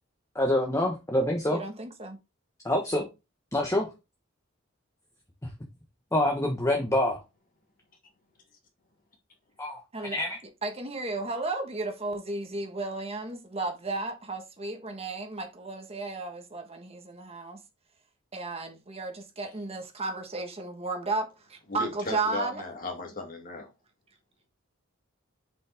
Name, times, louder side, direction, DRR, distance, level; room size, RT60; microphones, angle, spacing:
voice 1, 0.3-1.6 2.6-3.1 3.5-3.9 6.1-7.2 9.6-10.4, left 1 dB, 15° left, 1.2 m, -26 dB
voice 2, 1.5-2.2 9.9-10.2 10.6-17.6 18.3-22.6, right 3 dB, 30° right, 1.4 m, -34 dB
voice 3, 21.7-23.7, left 3 dB, 45° left, 2.4 m, -36 dB
7.3 x 5.3 x 3.5 m
head